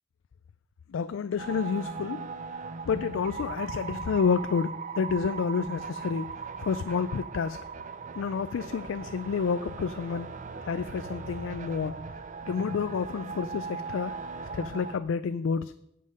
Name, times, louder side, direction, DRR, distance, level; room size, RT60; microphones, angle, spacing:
voice 1, 0.9-2.3 2.9-4.7 5.0-7.6 8.2-10.3 10.6-12.0 12.4-14.1 14.5-15.7, left 6 dB, 85° left, 13 dB, 0.4 m, -29 dB
sound 1, 1.4-15.0, right 5 dB, 40° right, 0.5 m, -39 dB
9.3 x 7.6 x 5.2 m, 0.81 s
head